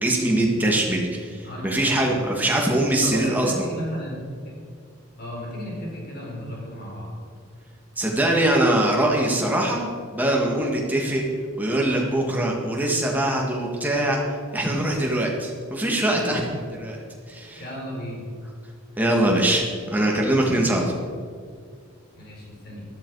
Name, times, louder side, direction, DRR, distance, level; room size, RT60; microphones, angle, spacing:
voice 1, 0.0-3.7 7.9-11.2 11.6-14.2 14.5-16.4 16.8-17.0 17.3-17.6 19.0-21.0, right 1 dB, 10° right, -1 dB, 1.8 m, -22 dB
voice 2, 1.4-2.0 2.2-2.4 3.0-4.5 5.2-7.1 16.1-16.5 17.6-18.2 22.1-22.9, equal, 45° left, -2 dB, 4.0 m, -34 dB
13.0 x 12.5 x 4.8 m, 2.1 s
head